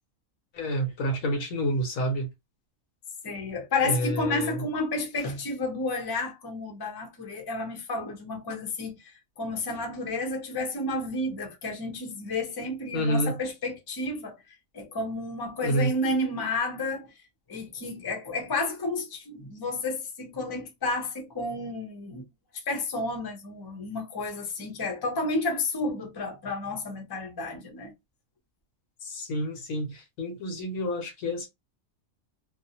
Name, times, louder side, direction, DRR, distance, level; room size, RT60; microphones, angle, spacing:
voice 1, 0.5-2.3 3.8-4.7 12.9-13.4 15.6-15.9 29.0-31.5, equal, 80° left, 1.2 m, -29 dB
voice 2, 3.2-14.4 14.7-17.2 17.5-22.2 22.5-27.9, left 2 dB, 25° left, 0.5 m, -31 dB
2.6 x 2.1 x 2.7 m
omnidirectional pair, 1.4 m